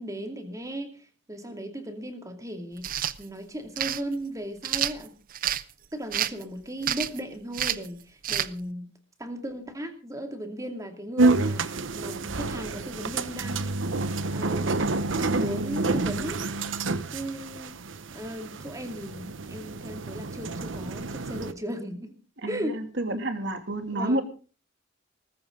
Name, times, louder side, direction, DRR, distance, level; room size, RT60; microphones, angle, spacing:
voice 1, 0.0-5.1 5.9-8.9 9.2-14.0 14.3-16.4 17.1-17.8 18.1-22.2 22.5-22.8 23.9-24.2, right 1 dB, 15° right, 5 dB, 2.6 m, -36 dB
sound 1, 2.8-3.2 3.8-4.0 4.6-5.6 6.1-6.4 6.8-7.2 7.5-7.9 8.2-8.5, right 11 dB, 45° right, 0.7 m, -28 dB
sound 2, 11.2-21.5, right 3 dB, 90° right, 1.0 m, -28 dB
voice 2, 22.4-24.2, right 1 dB, 65° right, 6 dB, 2.7 m, -29 dB
19.0 x 15.0 x 3.8 m, 0.37 s
head